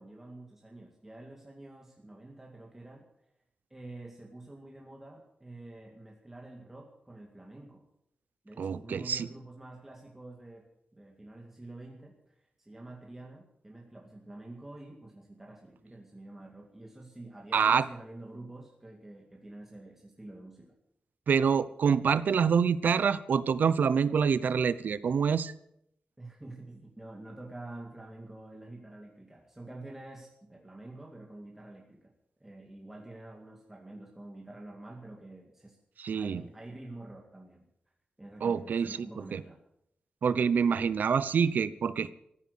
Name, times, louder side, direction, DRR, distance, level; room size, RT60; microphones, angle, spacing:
voice 1, 0.0-3.0 3.7-7.8 8.4-10.7 10.9-20.7 26.2-32.1 32.4-35.8 36.1-37.6 38.2-39.6, right 2 dB, 10° right, -1 dB, 2.1 m, -47 dB
voice 2, 8.6-9.3 17.5-17.9 21.3-25.5 36.0-36.4 38.4-39.4 40.2-42.1, right 6 dB, 85° right, 16 dB, 0.7 m, -26 dB
14.5 x 10.5 x 8.4 m, 0.75 s
wide cardioid pair, 170°, 3 cm